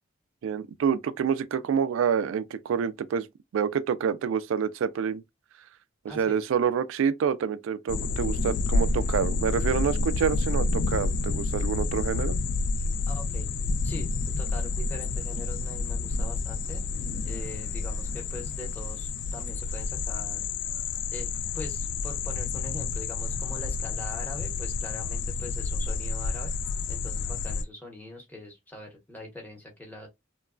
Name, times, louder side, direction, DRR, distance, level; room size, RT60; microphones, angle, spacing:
voice 1, 0.4-3.3 3.5-5.2 6.0-12.4, right 7 dB, 85° right, 0.3 m, -27 dB
voice 2, 6.1-6.4 13.1-13.5 13.8-14.1 14.4-16.8 17.2-20.5 21.1-26.5 26.9-30.1, left 1 dB, 10° left, 0.9 m, -42 dB
sound 1, 7.9-27.6, left 3 dB, 65° left, 0.3 m, -29 dB
2.9 x 2.2 x 2.4 m
head